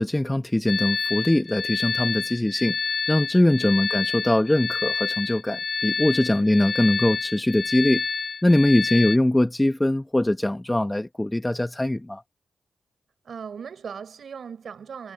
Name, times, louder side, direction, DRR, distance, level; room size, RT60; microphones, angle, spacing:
voice 1, 0.0-8.0 8.4-12.2, left 1 dB, 15° left, 1.1 m, -22 dB
sound 1, 0.7-9.2, left 5 dB, 55° left, 1.1 m, -28 dB
voice 2, 8.9-9.2 13.2-15.1, right 6 dB, 70° right, 4.5 m, -39 dB
supercardioid pair, 45°, 0 cm